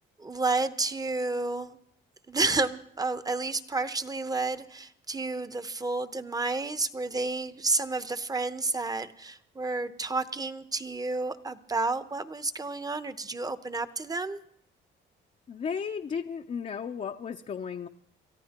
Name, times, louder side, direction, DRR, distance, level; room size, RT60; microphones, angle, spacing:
voice 1, 0.2-1.8 2.3-14.4, right 3 dB, 20° right, 12 dB, 0.9 m, -30 dB
voice 2, 15.5-17.9, left 6 dB, 35° left, 4 dB, 0.6 m, -34 dB
29.0 x 14.0 x 2.9 m, 0.68 s
cardioid pair, 90°, 20 cm